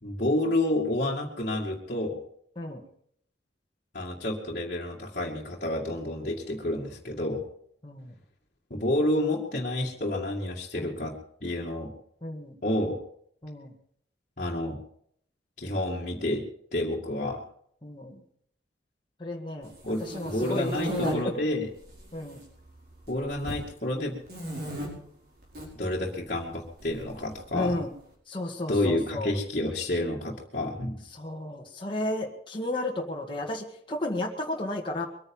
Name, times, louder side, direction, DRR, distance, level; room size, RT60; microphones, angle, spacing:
voice 1, 0.0-2.2 3.9-7.4 8.7-11.9 12.6-13.0 14.4-14.8 15.6-16.5 16.7-17.4 19.8-21.7 23.1-24.2 25.7-27.8 28.7-31.0, left 1 dB, 45° left, -5 dB, 2.3 m, -29 dB
voice 2, 12.2-12.5 13.4-13.7 17.8-18.2 19.2-19.7 20.1-21.2 22.1-22.4 27.5-27.9 28.3-29.3 31.2-35.1, left 1 dB, 30° left, 0 dB, 1.8 m, -33 dB
sound 1, 19.7-21.1 21.8-22.4 22.7-23.6 24.3-24.9 25.4-25.7 26.8-27.7, equal, 60° right, 5.3 m, -34 dB
23.0 x 9.7 x 5.5 m, 0.66 s
head